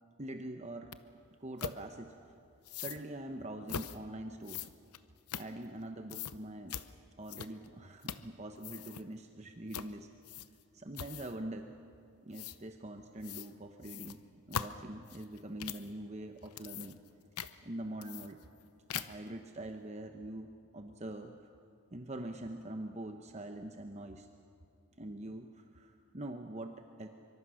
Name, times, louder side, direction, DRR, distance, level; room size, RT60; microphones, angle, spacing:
voice 1, 0.2-1.0 1.4-2.1 2.8-4.7 5.3-6.8 7.2-10.1 10.7-11.7 12.2-14.2 14.5-17.0 17.6-18.4 18.9-21.5 21.9-24.3 25.0-27.1, right 1 dB, 30° right, 5 dB, 0.9 m, -44 dB
sound 1, 0.9-1.0 1.6-1.8 2.6-3.0 3.7-4.0 4.4-5.8 6.1-6.4 6.7-6.9 7.3-7.7 8.0-8.3 8.6-9.0 9.7-9.9 10.2-10.6 10.9-11.4 12.3-12.6 13.2-13.5 13.8-15.9 16.4-17.1 17.4-17.5 18.0-18.6 18.9-19.3, left 8 dB, 85° left, 0.8 m, -41 dB
24.5 x 24.5 x 6.4 m, 2.4 s
head